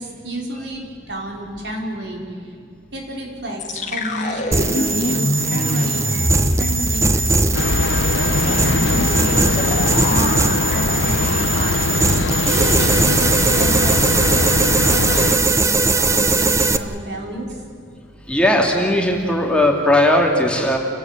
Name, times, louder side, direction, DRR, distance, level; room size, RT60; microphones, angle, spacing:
voice 1, 0.0-2.5 2.9-7.4 8.1-12.0 12.5-17.6, right 1 dB, 70° right, 0 dB, 4.8 m, -30 dB
sound 1, 3.6-12.6 12.9-13.1 13.5-13.8, left 1 dB, 45° left, 2.2 m, -25 dB
sound 2, 4.5-16.8, right 3 dB, 15° right, 0.8 m, -20 dB
Train, 7.5-15.4, left 3 dB, 90° left, 0.7 m, -21 dB
voice 2, 18.3-20.8, left 1 dB, 5° left, 1 dB, 2.5 m, -17 dB
28.5 x 16.0 x 9.0 m, 2.4 s
head